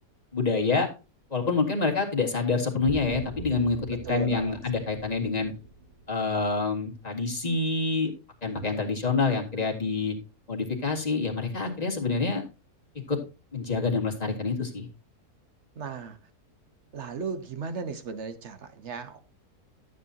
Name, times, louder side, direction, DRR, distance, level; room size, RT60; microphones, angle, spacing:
voice 1, 0.3-0.9 1.3-5.5 6.1-8.1 8.4-10.2 10.5-12.4 13.1-13.2 13.5-14.9, left 4 dB, 25° left, 2.0 m, -27 dB
sound 1, 2.9-6.5, right 1 dB, 30° right, 1.5 m, -42 dB
voice 2, 4.0-4.6 15.8-16.2 16.9-19.2, right 5 dB, 50° right, 1.2 m, -36 dB
12.5 x 8.2 x 2.8 m
omnidirectional pair, 1.7 m